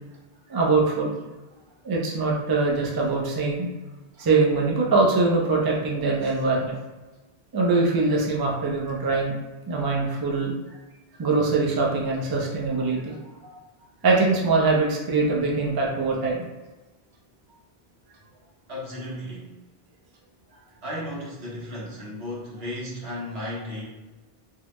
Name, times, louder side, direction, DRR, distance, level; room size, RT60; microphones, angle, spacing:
voice 1, 0.5-1.1 1.8-3.7 4.2-6.8 7.5-9.3 9.7-10.5 11.2-13.2 14.0-16.4, right 3 dB, 30° right, -2 dB, 0.4 m, -23 dB
voice 2, 18.7-19.5 20.8-23.8, left 1 dB, 90° right, -5 dB, 1.3 m, -34 dB
3.7 x 2.1 x 3.0 m, 1.2 s
omnidirectional pair, 1.0 m